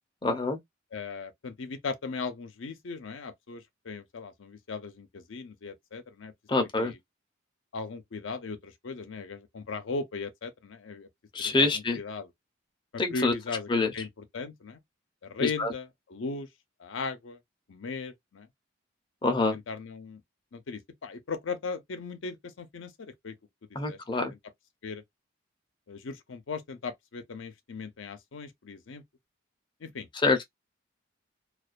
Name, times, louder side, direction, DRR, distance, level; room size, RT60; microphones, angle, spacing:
voice 1, 0.2-0.6 6.5-6.9 11.3-12.0 13.0-13.3 13.7-13.9 15.4-15.7 19.2-19.6 23.8-24.3 30.2-30.4, left 3 dB, 25° left, 0.6 m, -26 dB
voice 2, 0.9-6.3 6.8-7.0 7.7-11.1 11.4-12.3 12.9-14.8 15.2-16.5 16.8-17.4 17.7-18.5 19.5-20.2 20.5-23.3 23.9-24.2 24.8-25.0 25.9-29.0 29.8-30.1, left 4 dB, 85° left, 0.6 m, -38 dB
2.3 x 2.3 x 2.4 m
head